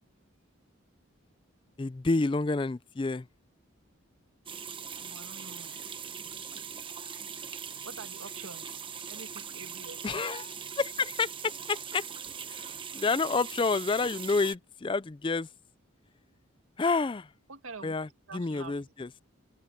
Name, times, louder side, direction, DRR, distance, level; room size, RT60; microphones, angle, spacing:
voice 1, 1.8-3.3 10.0-12.0 12.5-15.5 16.8-17.3 17.8-18.1 18.3-19.1, left 3 dB, 25° left, 0.4 m, -29 dB
sound 1, 4.5-14.6, right 7 dB, 25° right, 1.0 m, -41 dB
voice 2, 4.5-5.8 7.6-8.8 9.1-10.2 17.5-17.9 18.3-18.9, right 4 dB, 85° right, 1.9 m, -47 dB
head